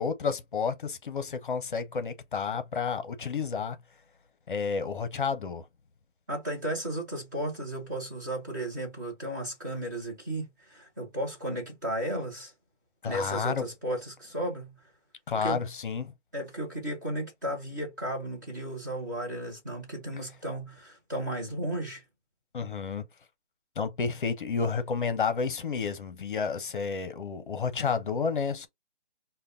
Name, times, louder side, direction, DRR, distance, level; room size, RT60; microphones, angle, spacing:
voice 1, 0.0-3.8 4.5-5.6 13.0-13.7 15.3-16.1 22.5-23.0 23.8-28.7, left 5 dB, 45° left, 0.7 m, -30 dB
voice 2, 6.3-12.5 13.0-14.8 15.3-15.6 16.3-22.0, right 1 dB, 15° right, 0.7 m, -34 dB
4.9 x 2.2 x 2.6 m
hypercardioid pair, 165°, 36 cm